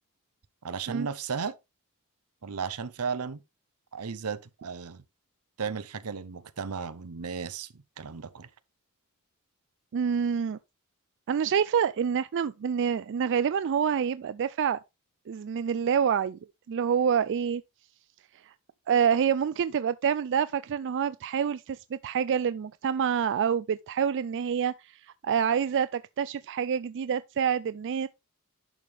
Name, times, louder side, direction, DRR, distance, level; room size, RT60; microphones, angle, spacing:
voice 1, 0.6-1.5 2.4-3.4 3.9-5.0 5.6-8.5, right 5 dB, 80° right, 0.7 m, -35 dB
voice 2, 9.9-10.6 11.3-14.8 15.3-16.4 16.7-17.6 18.4-18.5 18.9-25.0 25.2-28.1, right 7 dB, 55° right, 0.3 m, -27 dB
11.0 x 5.0 x 3.5 m
head